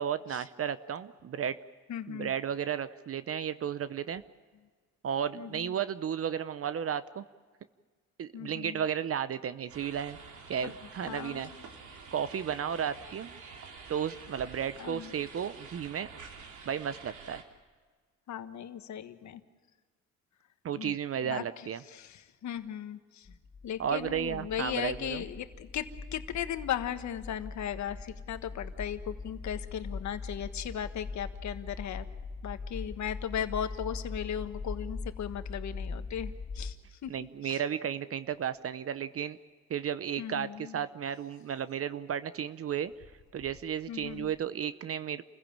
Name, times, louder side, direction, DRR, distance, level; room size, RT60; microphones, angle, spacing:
voice 1, 0.0-1.6 2.1-4.2 5.0-7.2 8.2-10.2 10.5-11.5 12.1-13.4 13.9-16.1 16.7-17.4 20.6-21.8 23.8-25.2 37.1-39.4 39.7-42.9 43.3-45.2, right 8 dB, 50° right, 14 dB, 0.8 m, -33 dB
voice 2, 1.9-2.3 5.3-5.7 8.3-8.8 10.6-10.7 11.1-11.6 14.8-15.1 18.3-19.4 20.7-21.0 21.2-21.4 21.9-23.3 23.6-32.0 32.4-37.1 37.4-37.6 40.2-40.8 43.9-44.3, left 9 dB, 65° left, 10 dB, 1.5 m, -37 dB
sound 1, 9.7-17.4, right 5 dB, 75° right, 3.1 m, -48 dB
sound 2, 23.2-36.7, left 4 dB, 40° left, 2.0 m, -41 dB
28.0 x 15.5 x 8.8 m, 1.5 s
cardioid pair, 90°, 30 cm